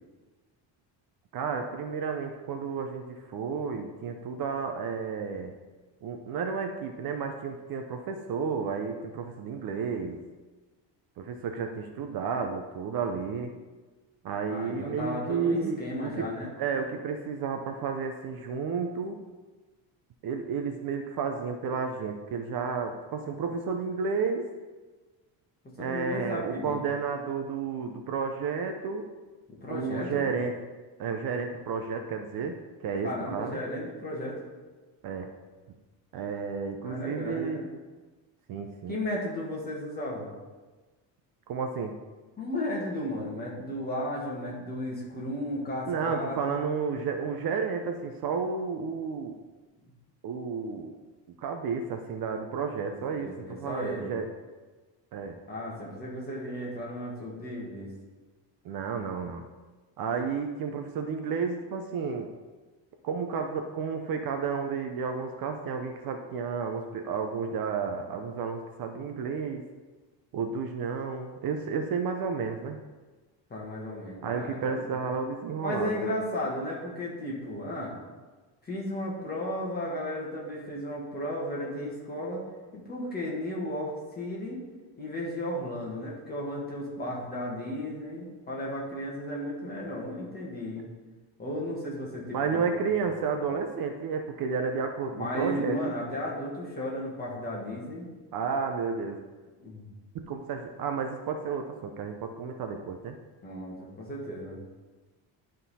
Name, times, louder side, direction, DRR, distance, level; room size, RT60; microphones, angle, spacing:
voice 1, 1.3-5.5 6.0-10.2 11.2-13.5 14.2-16.3 16.6-19.2 20.2-24.5 25.8-29.1 29.7-30.5 31.0-33.6 35.0-35.3 36.1-37.6 38.5-39.0 41.5-41.9 45.9-49.4 50.2-51.0 51.4-54.3 55.1-55.4 58.6-59.4 60.0-62.3 63.0-69.6 70.3-72.8 74.2-75.9 92.3-95.9 98.3-99.2 100.1-103.2, right 5 dB, 50° right, 5 dB, 0.6 m, -32 dB
voice 2, 14.5-16.5 25.8-26.8 29.6-30.3 33.0-34.5 36.8-37.7 38.9-40.3 42.4-46.6 49.8-49.9 52.7-54.1 55.5-57.9 73.5-75.0 75.6-78.0 78.6-82.4 82.7-84.6 85.0-90.9 91.4-92.9 93.4-93.5 95.1-98.1 99.6-99.8 103.4-104.6, left 1 dB, 20° left, -4 dB, 1.6 m, -34 dB
11.5 x 3.8 x 4.1 m, 1.3 s
cardioid pair, 175°, 46 cm